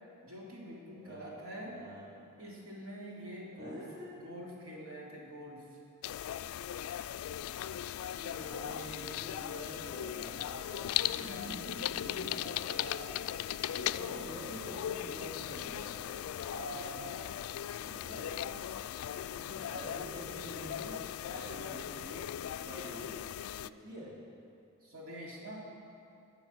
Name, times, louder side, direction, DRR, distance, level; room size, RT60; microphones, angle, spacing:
voice 1, 0.2-1.7 2.4-3.8 4.1-5.6 7.6-7.7 8.1-8.7 11.1-13.3 16.5-17.2 19.1-19.6 21.3-21.6 22.7-22.9 24.8-25.6, equal, 70° right, -4 dB, 3.2 m, -46 dB
voice 2, 0.9-1.4 1.7-2.1 3.5-4.1 8.5-12.3 13.7-16.2 16.5-16.6 17.8-18.7 19.6-23.2 23.5-24.2, equal, 45° right, -6 dB, 3.8 m, -47 dB
sound 1, 6.0-23.7, left 11 dB, 70° left, 0.3 m, -38 dB
19.5 x 7.0 x 6.2 m, 2.5 s
head